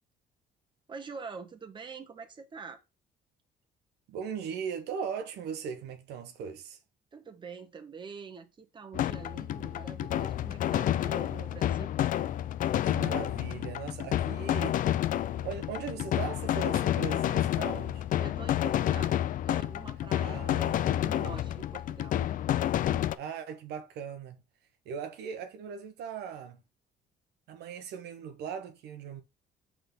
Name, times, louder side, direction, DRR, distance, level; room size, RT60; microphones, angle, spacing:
voice 1, 0.9-2.8 7.1-11.9 18.2-22.2, right 5 dB, 30° right, 1.2 m, -45 dB
voice 2, 4.1-6.8 12.8-18.0 20.2-21.0 23.2-24.4 24.9-26.6 27.5-29.2, right 7 dB, 75° right, 0.9 m, -39 dB
sound 1, 8.9-23.2, left 12 dB, 55° left, 0.4 m, -29 dB
5.8 x 3.7 x 5.3 m
cardioid pair, 110°, 17 cm